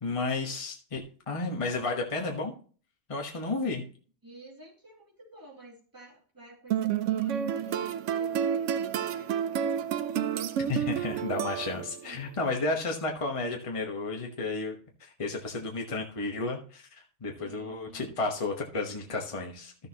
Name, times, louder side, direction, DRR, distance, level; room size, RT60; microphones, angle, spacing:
voice 1, 0.0-2.5 3.1-3.8 10.7-19.7, left 3 dB, 30° left, 1 dB, 1.1 m, -32 dB
voice 2, 4.2-9.9 11.9-12.2 17.4-18.2, right 1 dB, 15° right, -4 dB, 2.6 m, -51 dB
sound 1, 6.7-12.1, right 9 dB, 90° right, 0.9 m, -30 dB
13.5 x 6.8 x 2.9 m, 0.41 s
omnidirectional pair, 1.2 m